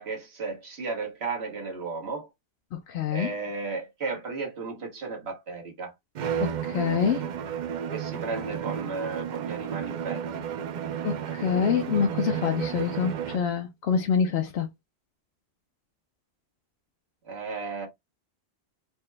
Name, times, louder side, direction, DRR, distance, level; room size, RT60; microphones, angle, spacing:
voice 1, 0.0-2.3 3.1-5.9 7.9-10.4 17.3-17.9, right 4 dB, 85° right, 1.5 m, -34 dB
voice 2, 2.7-3.3 6.4-7.3 11.0-14.7, left 7 dB, 90° left, 0.9 m, -26 dB
Bowed string instrument, 6.1-13.6, right 8 dB, 55° right, 0.6 m, -32 dB
4.4 x 2.1 x 3.3 m
omnidirectional pair, 1.0 m